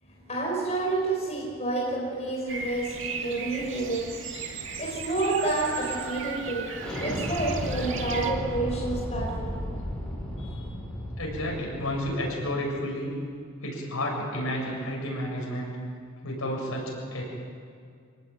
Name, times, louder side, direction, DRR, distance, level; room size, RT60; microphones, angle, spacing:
voice 1, 0.0-9.8 10.4-10.6, right 2 dB, 30° left, -2 dB, 4.7 m, -30 dB
Bird vocalization bird call bird song, 2.5-8.3, right 4 dB, 60° right, 2.3 m, -36 dB
Explosion, 6.8-12.3, equal, 5° left, 5.6 m, -34 dB
voice 2, 11.2-13.1 13.6-15.7 16.2-17.2, left 1 dB, 80° left, -1 dB, 7.6 m, -31 dB
26.0 x 18.5 x 9.2 m, 2.3 s
head